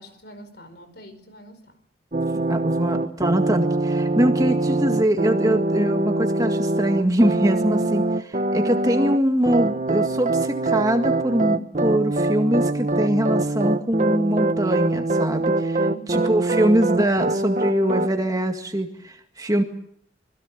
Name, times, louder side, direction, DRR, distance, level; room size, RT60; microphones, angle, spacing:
voice 1, 0.0-1.8 15.7-16.3, right 1 dB, 55° left, 10 dB, 5.0 m, -44 dB
sound 1, 2.1-9.2 9.5-18.1, right 2 dB, 40° right, 0.9 m, -23 dB
voice 2, 2.3-15.8 16.1-19.6, right 1 dB, 20° right, 5 dB, 1.9 m, -23 dB
26.0 x 21.0 x 7.5 m, 0.65 s
head